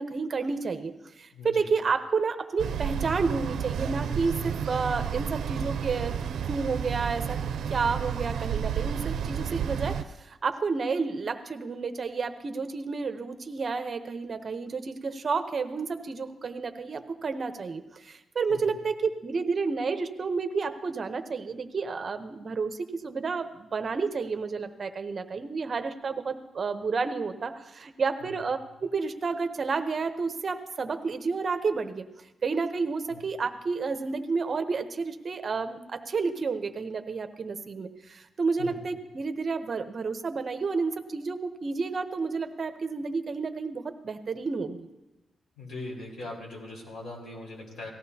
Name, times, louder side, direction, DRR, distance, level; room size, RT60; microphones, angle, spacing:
voice 1, 0.0-32.0 32.4-44.9, right 4 dB, 40° right, 8 dB, 0.8 m, -30 dB
voice 2, 1.3-1.7 18.5-18.8 28.2-28.4 33.1-33.2 38.6-38.8 45.6-47.9, left 2 dB, 75° left, -1 dB, 4.4 m, -40 dB
sound 1, 2.6-10.0, right 8 dB, 85° right, 0.4 m, -31 dB
18.5 x 14.5 x 2.8 m, 1.0 s
wide cardioid pair, 135°, 0 cm